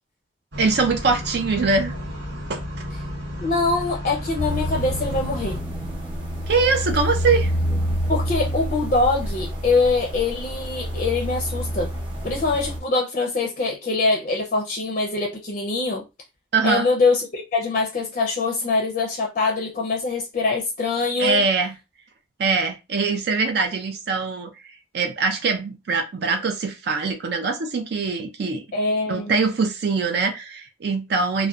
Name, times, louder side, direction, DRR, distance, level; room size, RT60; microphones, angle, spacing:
sound 1, 0.5-5.6, equal, 85° right, 1.0 m, -33 dB
voice 1, 0.6-1.9 2.5-2.6 6.5-7.5 16.5-16.9 21.2-21.8 22.4-24.5 24.9-28.6 29.1-31.5, right 4 dB, 60° right, 0.4 m, -22 dB
voice 2, 3.4-5.6 8.1-11.9 12.2-16.0 16.6-21.4 28.7-29.3, left 3 dB, 40° left, 0.5 m, -23 dB
sound 2, 4.4-12.8, equal, 25° right, 0.7 m, -28 dB
2.6 x 2.1 x 2.3 m
head